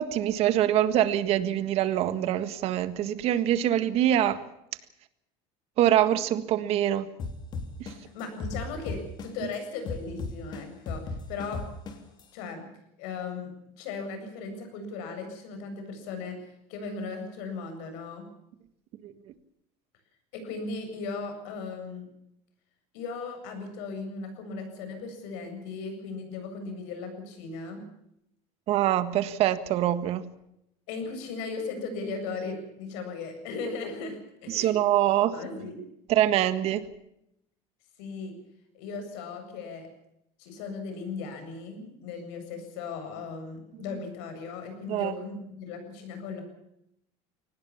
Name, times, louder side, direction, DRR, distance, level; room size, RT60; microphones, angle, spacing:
voice 1, 0.0-4.4 5.8-7.1 7.8-7.9 9.4-9.5 19.0-19.1 28.7-30.3 34.5-35.4 36.1-36.8 43.8-44.0 44.9-45.1, right 12 dB, 45° right, 12 dB, 1.7 m, -24 dB
sound 1, 7.2-9.5 9.9-12.2, left 4 dB, 30° left, 3.3 m, -35 dB
voice 2, 8.0-11.6 12.3-12.6 13.0-13.5 13.8-18.3 20.3-22.1 22.9-27.8 30.9-34.7 35.3-35.8 38.0-38.3 38.7-39.9 40.4-46.4, left 4 dB, 75° left, 6 dB, 7.7 m, -37 dB
23.5 x 19.0 x 7.2 m, 0.80 s
cardioid pair, 160°, 14 cm